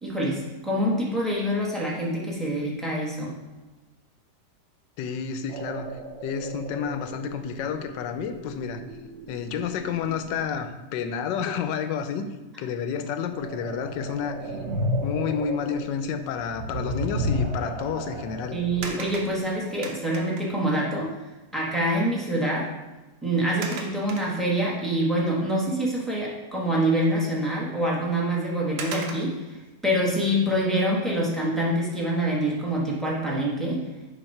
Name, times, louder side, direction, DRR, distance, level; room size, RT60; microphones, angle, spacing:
voice 1, 0.0-3.4 18.5-21.1 21.5-22.7 23.2-29.6 29.8-33.8, right 1 dB, ahead, -5 dB, 0.9 m, -26 dB
voice 2, 5.0-5.9 6.2-8.8 9.3-12.3 12.6-14.6 15.0-18.6, left 7 dB, 85° left, 8 dB, 1.2 m, -30 dB
sound 1, 5.5-10.6 13.2-19.5, equal, 55° right, 0.8 m, -34 dB
sound 2, 18.8-20.7 21.9-22.0 22.3-22.6 23.6-24.8 25.3-25.4 27.8-27.9 28.8-29.5 31.8-32.2 32.7-32.8, right 4 dB, 75° right, 1.3 m, -38 dB
7.0 x 2.8 x 5.4 m, 1.1 s
omnidirectional pair, 1.9 m